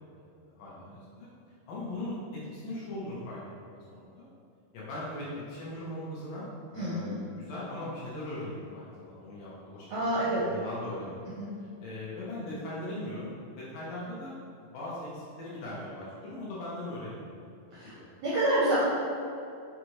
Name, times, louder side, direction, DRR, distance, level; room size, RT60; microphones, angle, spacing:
voice 1, 0.2-1.3 1.7-4.3 4.7-6.5 6.7-11.3 11.8-14.3 14.7-17.3, left 1 dB, 75° left, -8 dB, 2.1 m, -39 dB
voice 2, 6.7-7.1 9.9-10.4 11.4-11.5 17.7-17.9 18.2-18.8, right 1 dB, 80° right, -9 dB, 1.6 m, -27 dB
6.3 x 2.5 x 3.0 m, 2.6 s
omnidirectional pair, 4.3 m